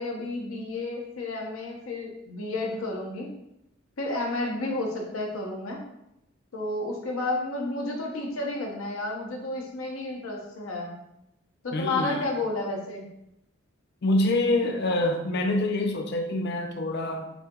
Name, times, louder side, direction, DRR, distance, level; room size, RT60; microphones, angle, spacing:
voice 1, 0.0-3.3 4.0-5.8 6.5-11.0 11.6-13.1, left 2 dB, 80° left, 0 dB, 0.9 m, -31 dB
voice 2, 11.7-12.2 14.0-17.3, left 1 dB, 50° left, 5 dB, 0.5 m, -26 dB
6.1 x 2.8 x 2.3 m, 0.84 s
head